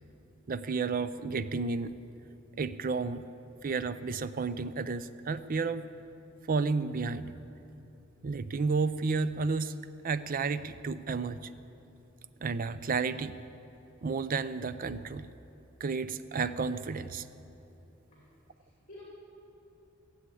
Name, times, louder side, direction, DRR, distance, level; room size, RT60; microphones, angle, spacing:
voice 1, 0.5-2.0 2.6-3.3 3.6-5.8 6.5-7.3 8.2-9.8 10.0-11.5 12.4-13.4 14.0-15.3 15.8-17.3, right 4 dB, 45° right, 13 dB, 0.5 m, -31 dB
voice 2, 18.1-19.0, left 1 dB, 40° left, -5 dB, 2.7 m, -54 dB
16.5 x 7.9 x 8.4 m, 2.9 s
head